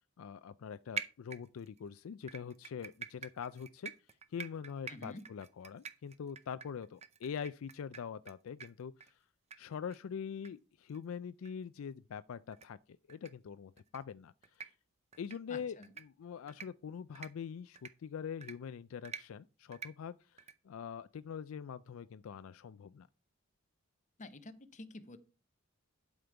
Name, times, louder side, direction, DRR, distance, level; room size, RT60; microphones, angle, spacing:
voice 1, 0.2-3.9 4.3-9.2 9.6-14.7 15.2-23.1, left 7 dB, 70° left, 0.4 m, -44 dB
sound 1, 1.0-1.8 2.3-8.3 8.6-8.7 9.0-9.1 9.5-9.6 9.9-10.0 10.4-10.5 10.9-11.0 11.4-11.5 12.5-12.7 13.1-13.3 13.8-14.0 14.4-14.7 15.1-15.4 15.8-16.0 16.5-16.7 17.1-17.3 17.8-17.9 18.4-18.5 19.0-19.2 19.7-19.9 20.4-20.5, right 6 dB, 30° right, 0.6 m, -45 dB
voice 2, 4.9-5.2 15.5-15.9 24.2-25.2, left 2 dB, 35° left, 0.8 m, -48 dB
11.5 x 5.1 x 4.5 m
head